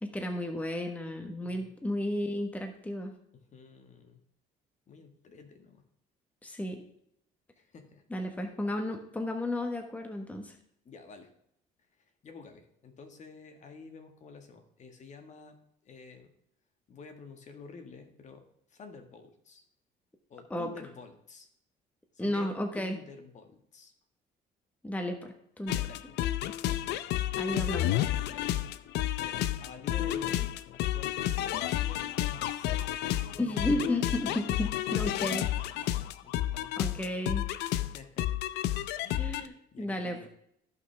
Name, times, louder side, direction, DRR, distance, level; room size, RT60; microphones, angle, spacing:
voice 1, 0.0-3.1 6.4-6.8 8.1-10.6 20.5-20.7 22.2-23.0 24.8-25.9 27.4-27.9 33.4-35.5 35.8-35.9 36.8-37.5 39.1-40.3, left 1 dB, 10° left, 4 dB, 1.2 m, -33 dB
voice 2, 3.3-4.2 4.9-5.8 7.5-8.0 10.8-11.3 12.0-15.6 15.8-16.3 16.9-19.6 20.3-21.5 22.1-23.9 25.8-26.1 27.5-27.6 28.2-28.8 29.2-34.1 35.5-37.2 37.8-38.3 39.0-40.3, left 4 dB, 45° left, 6 dB, 1.5 m, -50 dB
sound 1, 25.7-39.5, left 13 dB, 85° left, 0.5 m, -31 dB
15.0 x 5.8 x 3.3 m, 0.73 s
cardioid pair, 110°, 17 cm